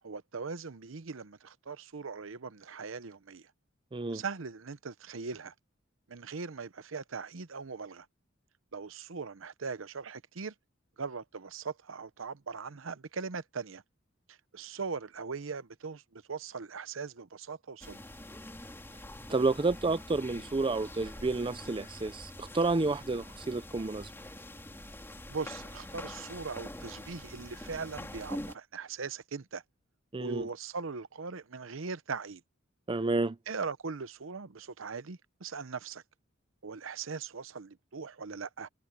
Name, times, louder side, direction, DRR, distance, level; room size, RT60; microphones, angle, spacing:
voice 1, 0.0-3.5 4.1-5.5 6.1-8.1 8.7-10.5 11.0-13.8 14.3-18.0 25.3-29.6 30.2-32.4 33.5-36.0 36.6-38.7, right 5 dB, 90° right, 0.8 m, -40 dB
voice 2, 3.9-4.2 19.3-24.1 30.1-30.5 32.9-33.4, right 3 dB, 25° right, 0.5 m, -30 dB
sound 1, 17.8-28.6, left 1 dB, 10° left, 2.9 m, -45 dB
head